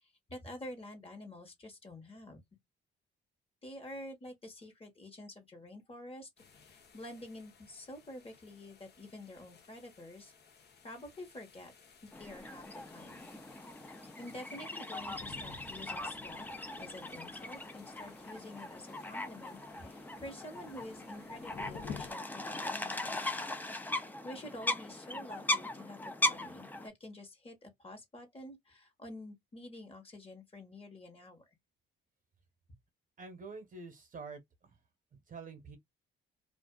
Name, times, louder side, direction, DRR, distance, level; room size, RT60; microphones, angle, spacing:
voice 1, 0.0-2.4 3.6-6.3 6.5-10.3 10.8-11.7 12.0-13.3 14.0-16.5 16.8-23.2 24.0-31.4, left 1 dB, 30° left, 1.2 m, -48 dB
sound 1, 6.4-22.1, left 6 dB, 55° left, 0.9 m, -54 dB
sound 2, 12.1-26.9, left 2 dB, 10° left, 0.5 m, -39 dB
voice 2, 33.2-34.8 35.1-35.8, right 4 dB, 45° right, 0.9 m, -47 dB
2.4 x 2.3 x 2.3 m
cardioid pair, 90°, 20 cm